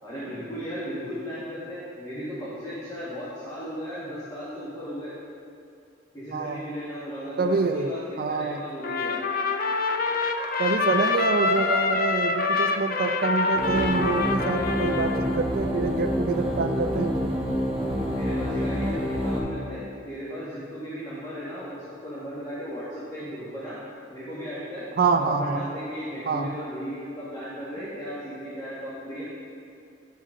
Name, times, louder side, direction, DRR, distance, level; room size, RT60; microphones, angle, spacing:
voice 1, 0.0-5.1 6.1-9.2 18.1-23.8 24.1-24.9 25.1-29.2, equal, 20° left, -11 dB, 1.6 m, -36 dB
voice 2, 6.3-6.7 7.4-8.6 10.6-17.3 25.0-25.7 26.3-26.6, right 4 dB, 55° right, 6 dB, 0.4 m, -26 dB
Trumpet, 8.8-15.4, left 3 dB, 50° left, 0.5 m, -26 dB
sound 1, 13.5-19.4, equal, 5° right, 1.5 m, -27 dB
11.5 x 5.2 x 3.7 m, 2.4 s
head